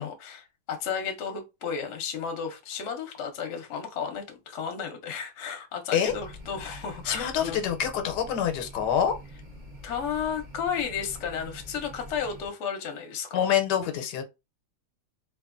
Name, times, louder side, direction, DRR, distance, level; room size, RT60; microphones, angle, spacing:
voice 1, 0.0-7.6 9.8-13.4, left 7 dB, 60° left, 0.8 m, -33 dB
sound 1, 6.1-12.5, equal, 45° right, 0.6 m, -45 dB
voice 2, 7.1-9.1 13.3-14.2, left 9 dB, 90° left, 1.2 m, -26 dB
2.7 x 2.4 x 2.4 m
omnidirectional pair, 1.8 m